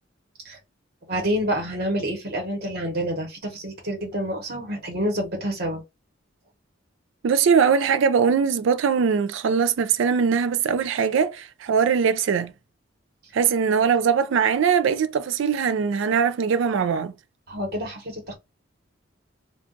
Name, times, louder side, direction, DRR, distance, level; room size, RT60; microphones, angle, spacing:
voice 1, 1.1-5.8 13.2-13.3 17.5-18.3, equal, 50° right, 1.0 m, -28 dB
voice 2, 7.2-12.5 13.3-17.1, right 6 dB, 70° right, 0.4 m, -21 dB
2.4 x 2.4 x 3.7 m
head